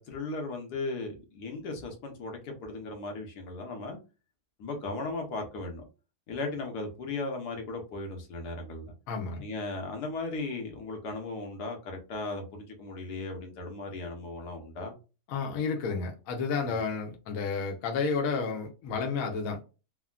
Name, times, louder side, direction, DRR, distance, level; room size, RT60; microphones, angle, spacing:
voice 1, 0.0-4.0 4.6-5.8 6.3-8.9 9.4-14.9 16.7-16.8, left 3 dB, 90° left, 1.4 m, -37 dB
voice 2, 9.1-9.4 15.3-19.6, left 5 dB, 65° left, 1.0 m, -31 dB
3.4 x 2.2 x 2.3 m
omnidirectional pair, 1.7 m